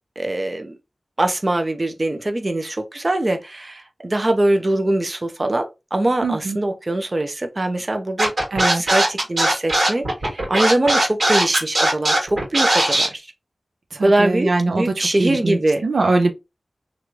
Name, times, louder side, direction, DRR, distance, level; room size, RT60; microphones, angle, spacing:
voice 1, 0.2-0.8 1.2-13.2 14.0-15.8, right 1 dB, 40° right, 0.6 m, -22 dB
voice 2, 6.2-6.6 8.5-8.8 13.9-16.3, right 3 dB, 90° right, 0.5 m, -22 dB
Scratching (performance technique), 8.2-13.1, right 1 dB, 70° right, 1.7 m, -18 dB
3.0 x 2.5 x 3.0 m
cardioid pair, 45°, 0 cm